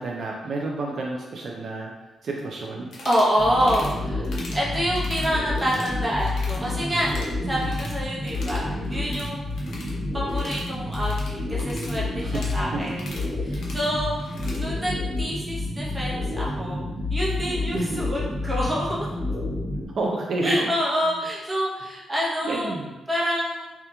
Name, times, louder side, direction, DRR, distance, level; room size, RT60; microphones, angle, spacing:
voice 1, 0.0-1.9 2.2-2.9 7.4-7.7 12.3-12.4 12.7-12.8 17.7-18.0 19.9-20.6 22.4-22.9, right 2 dB, 65° right, -1 dB, 0.3 m, -29 dB
sound 1, 2.8-3.3 3.6-3.9 4.2-4.6 4.9-5.9 6.2-6.6 6.9-8.0 8.2-14.6, left 2 dB, 75° left, 0.5 m, -42 dB
voice 2, 3.0-4.3 4.5-7.1 7.5-9.5 10.1-13.0 13.4-14.2 14.5-19.1 20.4-22.7 23.1-23.7, equal, 20° right, -5 dB, 0.8 m, -27 dB
sound 2, 3.4-19.9, left 2 dB, ahead, 1.2 m, -29 dB
2.9 x 2.2 x 2.2 m, 1.1 s
cardioid pair, 85°, 0 cm